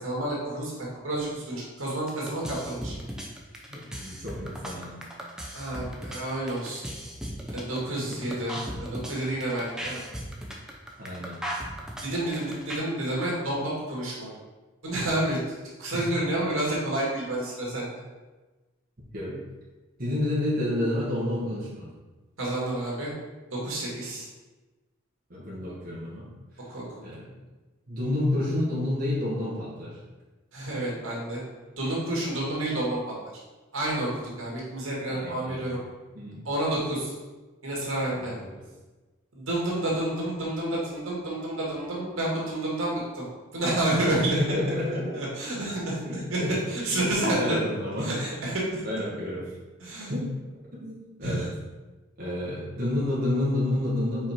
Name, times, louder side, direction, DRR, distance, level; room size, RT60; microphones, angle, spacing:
voice 1, 0.0-2.9 5.5-6.8 7.5-10.0 12.0-14.3 14.8-15.4 15.8-17.9 22.4-23.1 23.5-24.3 26.7-26.8 30.5-31.4 31.8-33.0 33.7-35.8 36.4-37.1 37.6-38.3 39.3-43.2 43.5-44.4 44.8-46.4 46.7-47.6 48.0-48.8 49.8-50.1 51.2-51.5, right 1 dB, 80° right, -4 dB, 2.2 m, -29 dB
sound 1, 1.8-12.8, equal, 5° right, 0.7 m, -36 dB
voice 2, 3.7-5.0 8.5-8.6 11.0-11.4 15.9-16.1 19.1-19.4 20.0-21.9 25.3-26.3 27.0-27.3 27.9-30.0 35.1-35.7 36.1-36.5 38.1-38.5 44.1-45.2 46.0-46.6 46.9-48.1 48.8-49.4 50.1-50.3 50.8-51.5 52.2-54.3, left 1 dB, 45° right, -7 dB, 1.5 m, -30 dB
5.5 x 4.7 x 4.4 m, 1.2 s
head